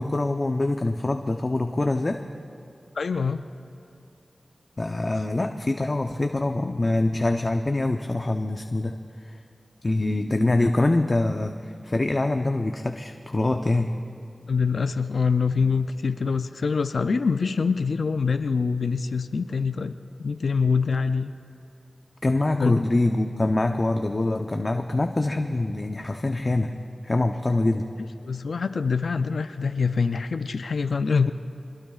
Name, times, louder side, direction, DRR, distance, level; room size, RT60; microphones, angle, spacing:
voice 1, 0.0-2.2 4.8-9.4 9.8-14.0 22.2-26.7 27.0-27.9, left 2 dB, 40° left, 5 dB, 0.7 m, -24 dB
voice 2, 3.0-3.4 14.5-21.3 22.6-22.8 28.2-31.3, left 5 dB, 85° left, 9 dB, 0.4 m, -25 dB
24.0 x 21.0 x 2.4 m, 2.7 s
cardioid pair, 45°, 0 cm